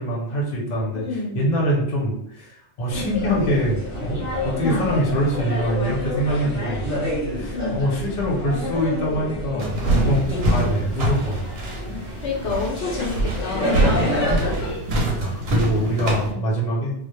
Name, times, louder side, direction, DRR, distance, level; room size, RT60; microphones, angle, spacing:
voice 1, 0.0-6.8 7.2-11.5 14.1-14.3 14.6-16.9, equal, 45° left, -4 dB, 0.7 m, -24 dB
voice 2, 0.9-1.4 4.5-4.9 7.5-7.8 9.8-10.1 12.2-13.8 16.3-16.4, left 3 dB, 75° left, -2 dB, 0.9 m, -28 dB
sound 1, 2.9-14.7, left 1 dB, 15° right, 0.8 m, -28 dB
sound 2, 9.6-16.3, right 1 dB, 65° right, 0.8 m, -24 dB
2.1 x 2.0 x 3.0 m, 0.75 s
omnidirectional pair, 1.2 m